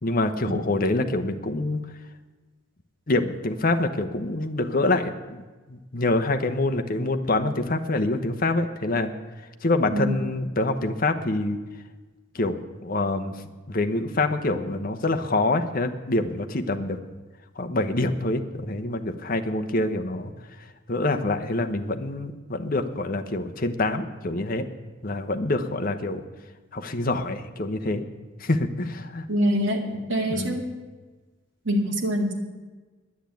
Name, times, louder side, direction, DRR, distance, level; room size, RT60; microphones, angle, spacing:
voice 1, 0.0-1.8 3.1-5.4 5.7-9.1 9.6-11.6 12.3-13.4 13.7-17.0 17.6-20.3 20.9-24.7 25.0-26.2 26.7-28.0 28.4-29.3 30.3-30.6, left 2 dB, 40° left, 6 dB, 1.0 m, -26 dB
voice 2, 29.3-30.7 31.6-32.4, equal, 60° right, 1 dB, 2.3 m, -25 dB
10.5 x 10.0 x 8.5 m, 1.3 s
head